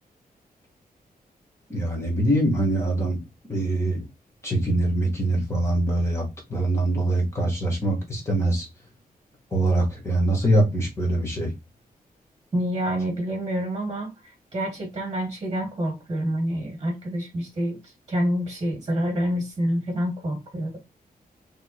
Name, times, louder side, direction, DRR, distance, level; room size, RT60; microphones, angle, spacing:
voice 1, 1.7-3.2 3.5-4.0 4.4-6.2 6.5-8.7 9.5-11.5, right 1 dB, 15° left, 2.1 m, -23 dB
voice 2, 12.5-17.8 18.1-20.8, equal, 25° right, 1.6 m, -27 dB
5.6 x 3.5 x 2.5 m
wide cardioid pair, 170°, 16 cm